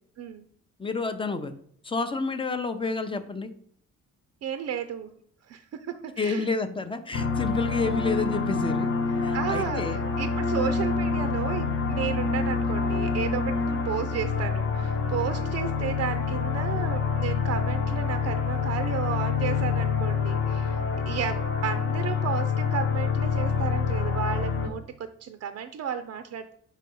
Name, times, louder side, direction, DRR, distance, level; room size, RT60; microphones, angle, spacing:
voice 1, 0.8-1.5 1.8-3.5 6.2-8.9 9.2-10.0, left 4 dB, 15° left, 9 dB, 0.6 m, -29 dB
voice 2, 4.4-5.1 5.5-6.5 9.3-26.5, right 8 dB, 55° right, 10 dB, 0.5 m, -33 dB
sound 1, 7.1-24.7, left 5 dB, 45° left, 1.0 m, -27 dB
4.7 x 4.1 x 5.3 m, 0.64 s
cardioid pair, 90°, 30 cm